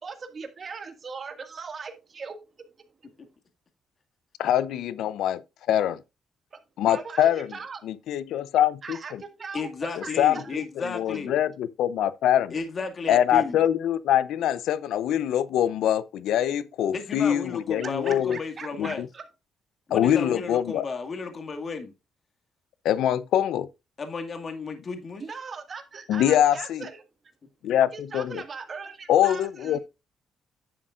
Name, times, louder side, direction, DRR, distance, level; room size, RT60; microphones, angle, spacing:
voice 1, 0.0-2.4 6.5-6.6 6.9-7.8 8.8-10.5 17.8-19.2 25.2-27.0 27.9-29.8, right 5 dB, 45° right, 1.9 m, -39 dB
voice 2, 4.4-5.4 5.7-6.0 6.8-7.5 7.8-9.0 10.2-10.6 10.9-12.5 13.1-18.4 18.8-19.1 19.9-20.8 22.8-23.7 26.1-26.8 27.6-28.4 29.1-29.8, left 11 dB, 80° left, 0.6 m, -24 dB
voice 3, 9.5-11.4 12.5-13.6 16.9-19.0 19.9-21.9 24.0-25.2 27.6-27.7, left 4 dB, 40° left, 2.0 m, -33 dB
10.5 x 7.4 x 2.5 m
cardioid pair, 90°, 0 cm